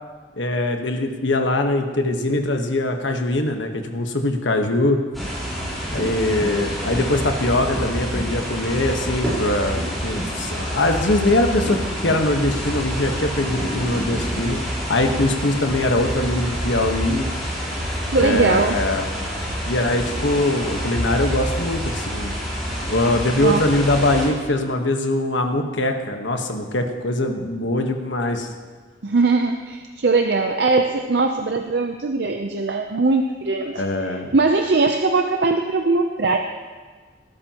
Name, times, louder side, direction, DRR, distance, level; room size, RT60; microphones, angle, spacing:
voice 1, 0.4-5.0 5.9-14.6 14.9-17.3 18.2-19.0 19.6-22.3 22.8-28.5 33.8-34.3, left 1 dB, 80° left, 4 dB, 1.3 m, -22 dB
sound 1, 5.1-24.3, equal, ahead, 4.3 m, -27 dB
voice 2, 18.1-18.7 23.4-23.6 29.0-36.4, right 3 dB, 60° right, 5 dB, 0.6 m, -20 dB
19.0 x 12.0 x 3.0 m, 1.5 s
head